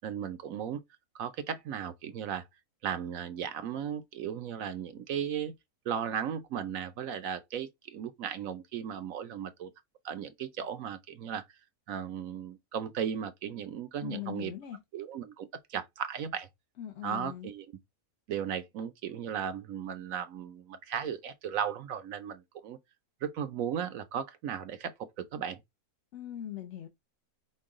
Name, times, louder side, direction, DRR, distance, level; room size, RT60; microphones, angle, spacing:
voice 1, 0.0-0.8 1.1-2.4 2.8-5.5 5.9-9.7 10.0-11.4 11.9-14.5 14.9-16.5 17.0-17.7 18.3-22.8 23.2-25.6, right 8 dB, 65° right, 1.0 m, -36 dB
voice 2, 14.0-14.8 16.8-17.5 26.1-26.9, left 11 dB, 60° left, 0.9 m, -40 dB
5.3 x 2.2 x 3.6 m
omnidirectional pair, 1.6 m